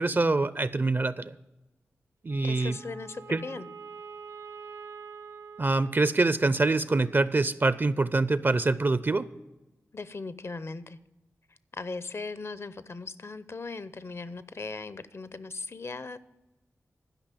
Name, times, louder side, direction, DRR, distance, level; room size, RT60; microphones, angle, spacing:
voice 1, 0.0-1.3 2.2-2.8 3.3-3.4 5.6-9.3, right 3 dB, 40° right, 16 dB, 0.5 m, -25 dB
Wind instrument woodwind instrument, 2.2-6.7, right 5 dB, 80° right, 1.1 m, -46 dB
voice 2, 2.4-3.7 9.9-11.0 11.7-16.2, left 3 dB, 55° left, 16 dB, 0.6 m, -38 dB
12.0 x 5.5 x 9.0 m, 1.0 s
cardioid pair, 50°, 5 cm